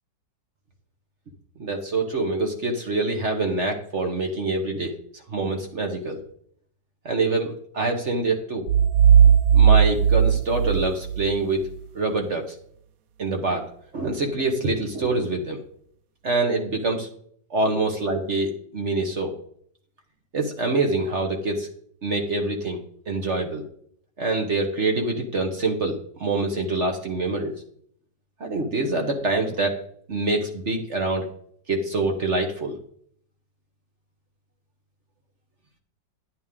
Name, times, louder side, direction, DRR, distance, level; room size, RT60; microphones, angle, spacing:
voice 1, 1.6-4.9 5.3-6.2 7.0-8.6 9.5-11.6 11.9-12.4 13.2-13.7 13.9-15.6 16.2-17.1 17.5-19.3 20.3-21.7 22.0-23.6 24.2-27.5 28.4-29.8 30.1-31.3 31.7-32.8, right 2 dB, 45° right, 3 dB, 1.4 m, -25 dB
sound 1, 8.7-11.4, right 8 dB, 75° right, 0.8 m, -17 dB
11.0 x 8.6 x 3.7 m, 0.62 s
omnidirectional pair, 2.0 m